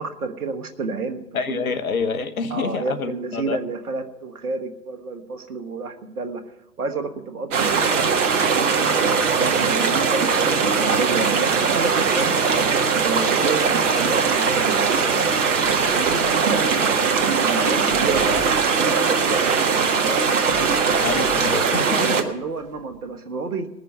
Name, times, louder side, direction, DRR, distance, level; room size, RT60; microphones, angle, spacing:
voice 1, 0.0-1.7 2.5-6.4 6.8-8.1 9.3-12.3 13.0-15.3 15.7-20.3 21.7-23.7, right 4 dB, 65° right, 8 dB, 1.5 m, -30 dB
voice 2, 1.3-3.6 21.0-22.2, left 5 dB, 60° left, 11 dB, 1.1 m, -27 dB
sound 1, 7.5-22.2, right 5 dB, 50° right, 1.5 m, -20 dB
sound 2, 15.6-23.1, equal, 15° left, 6.2 m, -42 dB
20.0 x 6.7 x 6.7 m, 0.99 s
figure-of-eight pair, 120°, 47 cm